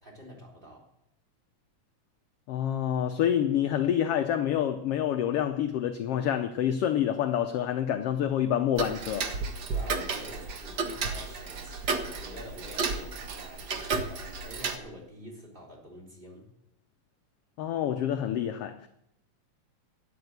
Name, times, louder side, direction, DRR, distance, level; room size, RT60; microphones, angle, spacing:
voice 1, 0.0-0.8 9.7-16.5, equal, 15° right, 3.9 m, -47 dB
voice 2, 2.5-9.3 17.6-18.9, left 10 dB, 70° left, 1.5 m, -27 dB
Tick-tock, 8.8-14.8, right 4 dB, 60° right, 1.0 m, -33 dB
13.0 x 9.5 x 7.9 m
omnidirectional pair, 3.3 m